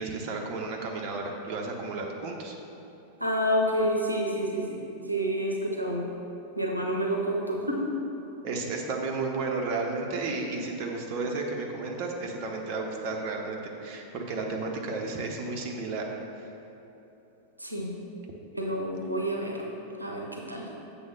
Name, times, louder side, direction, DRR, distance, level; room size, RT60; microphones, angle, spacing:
voice 1, 0.0-2.6 8.4-16.1 16.4-16.5, right 3 dB, 45° right, 0 dB, 0.8 m, -33 dB
voice 2, 3.2-6.0 6.5-7.9 17.6-17.9 18.5-19.6 20.0-20.7, equal, 85° right, -1 dB, 0.8 m, -29 dB
7.4 x 3.4 x 5.9 m, 3.0 s
figure-of-eight pair, 90°, 0 cm